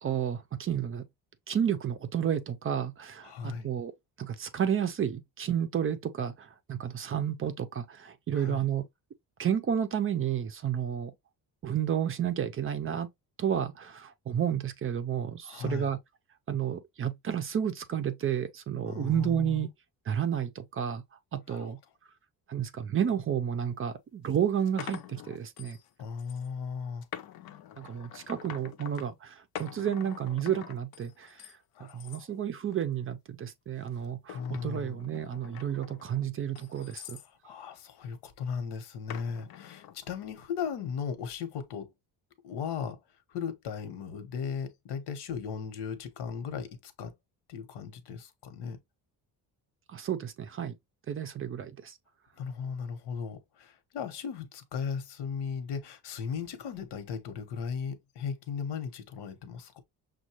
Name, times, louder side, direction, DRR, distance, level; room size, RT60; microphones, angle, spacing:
voice 1, 0.0-1.0 1.5-3.9 4.2-8.9 9.4-11.1 11.6-13.1 13.4-16.0 16.5-19.7 20.1-21.0 21.3-21.8 22.5-25.8 27.8-31.5 31.8-37.2 49.9-50.8 51.1-52.0, right 9 dB, 35° right, 0.4 m, -31 dB
voice 2, 3.2-3.7 8.3-8.7 15.4-15.9 18.9-19.6 21.5-21.7 26.0-27.1 31.8-32.3 34.3-35.0 37.4-41.9 42.4-43.0 43.3-47.1 47.5-48.8 52.4-59.8, left 6 dB, 90° left, 1.1 m, -37 dB
sound 1, 23.7-23.8 24.3-25.9 26.2-26.5 27.0-29.1 29.5-31.5 31.9-32.2 32.7-33.1 33.8-37.3 39.1-39.9, left 11 dB, 65° left, 0.6 m, -46 dB
6.3 x 2.2 x 2.9 m
cardioid pair, 165°, 39 cm